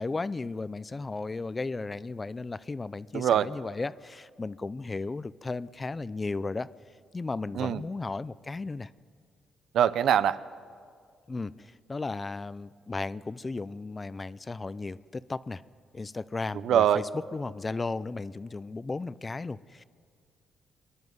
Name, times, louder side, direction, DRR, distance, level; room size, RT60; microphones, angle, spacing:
voice 1, 0.0-6.7 7.1-8.9 11.3-15.6 15.9-17.0 17.3-19.8, left 3 dB, 25° left, 18 dB, 0.5 m, -35 dB
voice 2, 3.1-3.5 7.5-7.8 9.7-10.4 16.5-17.0, right 9 dB, 70° right, 15 dB, 0.6 m, -23 dB
24.5 x 11.5 x 9.5 m, 2.1 s
cardioid pair, 90°, 0 cm